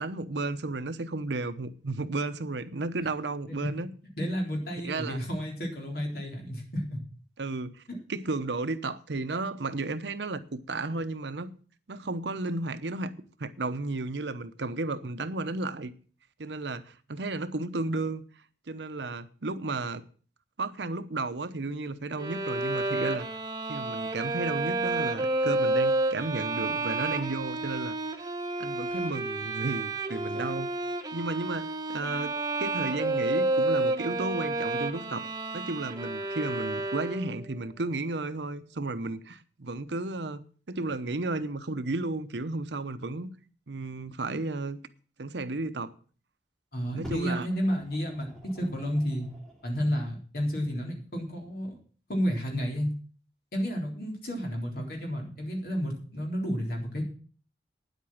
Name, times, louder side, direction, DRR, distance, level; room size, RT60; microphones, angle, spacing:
voice 1, 0.0-3.9 4.8-5.2 7.4-7.8 8.1-10.4 10.7-11.5 11.9-13.1 13.4-15.9 16.4-18.2 18.7-20.0 20.6-23.3 23.7-28.0 28.6-30.7 31.1-43.3 43.7-44.8 45.2-45.9 46.9-47.5, right 2 dB, 80° right, 0.9 m, -33 dB
voice 2, 4.2-7.0 7.9-8.0 46.7-49.3 49.6-51.7 52.1-52.9 53.5-57.0, equal, 55° left, 3.8 m, -31 dB
Bowed string instrument, 22.2-37.5, right 2 dB, 20° right, 0.9 m, -30 dB
Fire, 47.0-49.9 50.7-50.8, equal, 5° left, 2.4 m, -49 dB
9.7 x 8.2 x 7.2 m
head